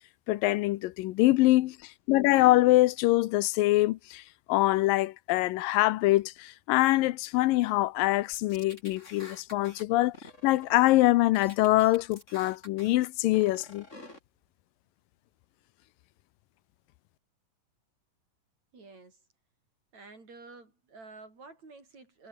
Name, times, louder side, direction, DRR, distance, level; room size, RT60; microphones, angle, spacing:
voice 1, 0.3-4.2 4.5-10.1 10.4-13.8, left 17 dB, 85° left, 2.4 m, -24 dB
sound 1, 8.3-9.8 10.1-11.1 11.3-12.9 13.3-14.2, left 2 dB, 20° left, 5.4 m, -49 dB
voice 2, 18.7-19.2 19.9-22.3, right 3 dB, 50° right, 8.0 m, -50 dB
omnidirectional pair, 4.0 m